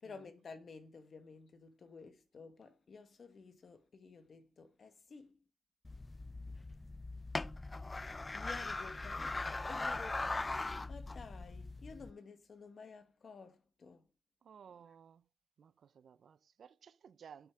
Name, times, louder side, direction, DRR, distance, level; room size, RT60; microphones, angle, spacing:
voice 1, 0.0-5.4 8.3-9.4 9.7-10.4 10.9-14.0, left 4 dB, 45° left, 1.3 m, -53 dB
sound 1, 5.8-12.1, left 2 dB, 20° left, 0.3 m, -40 dB
voice 2, 14.4-15.3 15.6-17.5, right 7 dB, 60° right, 0.4 m, -57 dB
8.5 x 6.3 x 3.5 m
cardioid pair, 125°, 0 cm